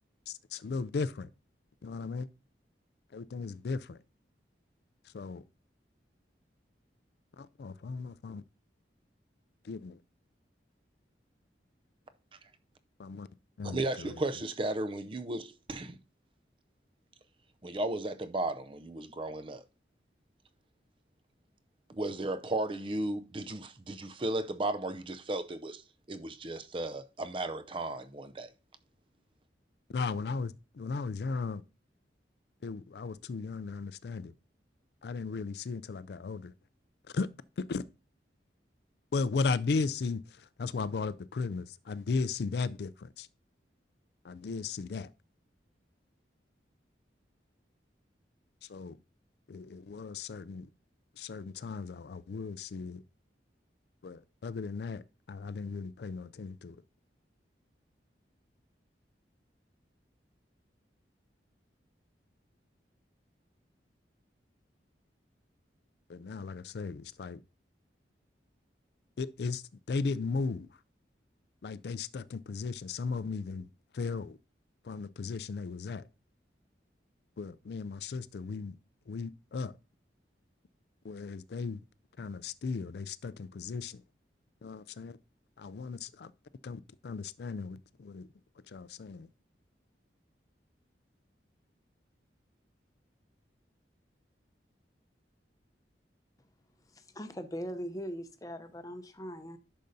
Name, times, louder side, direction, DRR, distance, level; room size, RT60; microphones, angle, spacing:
voice 1, 0.3-1.3 1.8-2.3 3.1-4.0 5.0-5.4 7.4-8.4 9.6-10.0 13.0-13.3 13.6-14.2 29.9-31.6 32.6-34.3 35.0-36.5 37.1-37.3 37.6-37.8 39.1-43.3 44.2-45.1 48.6-49.0 49.5-50.7 51.1-53.0 54.0-55.0 55.3-56.8 66.1-67.4 69.2-70.8 71.6-73.7 73.9-74.4 74.8-76.1 77.4-78.8 79.1-79.8 81.0-81.8 82.2-84.0 84.6-85.2 85.6-86.3 86.6-88.3 88.7-89.3, left 4 dB, 60° left, 0.4 m, -36 dB
voice 2, 13.6-16.0 17.6-19.6 21.9-25.8 26.1-28.5, right 2 dB, 30° right, 0.5 m, -35 dB
voice 3, 96.9-99.6, equal, 20° left, 0.7 m, -40 dB
10.5 x 6.5 x 2.7 m
head